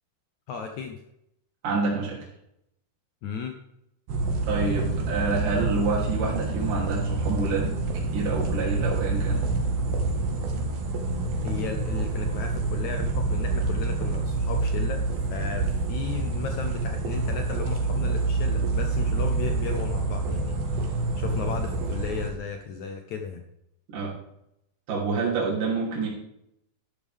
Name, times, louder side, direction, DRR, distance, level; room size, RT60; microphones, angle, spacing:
voice 1, 0.5-1.0 3.2-3.6 11.4-23.4, left 6 dB, 70° left, 5 dB, 2.0 m, -35 dB
voice 2, 1.6-2.2 4.5-7.7 8.1-9.5 23.9-24.1 24.9-26.1, right 4 dB, 65° right, -4 dB, 4.6 m, -27 dB
sound 1, 4.1-22.3, right 3 dB, 90° right, 3.5 m, -27 dB
12.5 x 12.0 x 3.5 m, 0.80 s
omnidirectional pair, 4.1 m